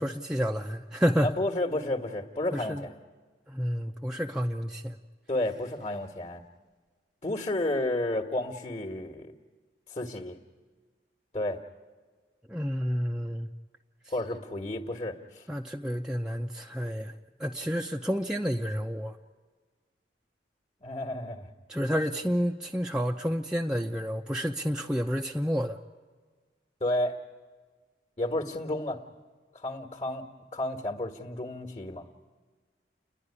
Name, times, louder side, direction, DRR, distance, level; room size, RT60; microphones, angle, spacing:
voice 1, 0.0-1.3 2.5-2.8 3.5-5.0 12.5-13.5 15.5-17.1 17.4-19.2 21.7-25.8, equal, 5° right, 1 dB, 0.6 m, -30 dB
voice 2, 1.2-2.9 5.3-6.4 7.2-9.3 9.9-10.4 11.3-11.6 14.1-15.5 20.8-21.5 26.8-27.2 28.2-29.0 29.5-32.0, left 1 dB, 35° left, 3 dB, 1.4 m, -31 dB
30.0 x 11.0 x 9.8 m, 1.5 s
head